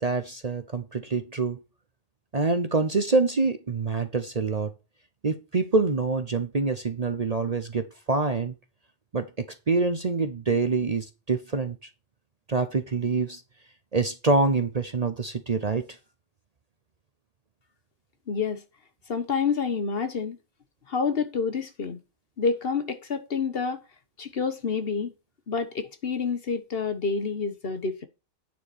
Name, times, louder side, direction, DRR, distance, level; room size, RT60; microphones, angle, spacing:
voice 1, 0.0-1.6 2.3-4.7 5.2-8.5 9.1-11.8 12.5-13.4 13.9-15.9, right 3 dB, 35° right, 0.8 m, -26 dB
voice 2, 18.3-18.6 19.1-20.4 20.9-22.0 22.4-23.8 24.2-25.1 25.5-28.1, left 5 dB, 50° left, 1.3 m, -28 dB
9.4 x 7.1 x 4.3 m
omnidirectional pair, 1.3 m